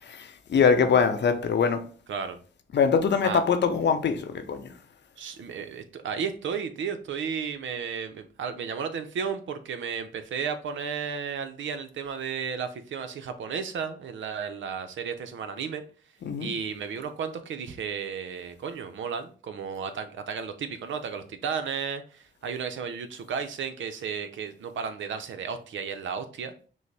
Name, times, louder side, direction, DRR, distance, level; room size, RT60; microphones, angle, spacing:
voice 1, 0.5-1.8 2.7-4.7 16.2-16.5, left 6 dB, 65° left, 0.7 m, -22 dB
voice 2, 5.2-15.8 16.4-26.7, right 6 dB, 85° right, 0.6 m, -33 dB
6.1 x 2.0 x 3.3 m
cardioid pair, 65°, 19 cm